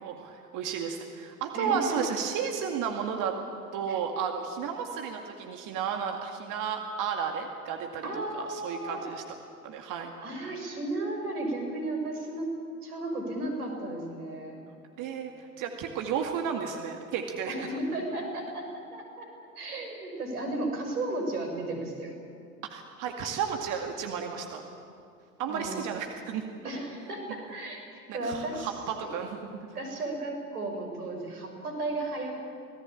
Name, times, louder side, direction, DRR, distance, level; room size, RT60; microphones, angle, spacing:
voice 1, 0.0-3.3 3.7-9.2 9.6-10.1 15.0-17.7 22.7-24.7 25.4-26.4 28.1-29.7, right 7 dB, 40° right, 4 dB, 2.3 m, -33 dB
voice 2, 1.5-2.0 3.9-4.0 8.0-9.0 10.2-12.5 12.8-14.6 17.5-19.3 19.6-22.1 25.5-25.8 26.6-28.7 29.0-29.1 29.7-32.4, right 2 dB, 75° right, 3 dB, 5.9 m, -34 dB
26.0 x 18.5 x 8.9 m, 2.5 s
figure-of-eight pair, 85°, 45 cm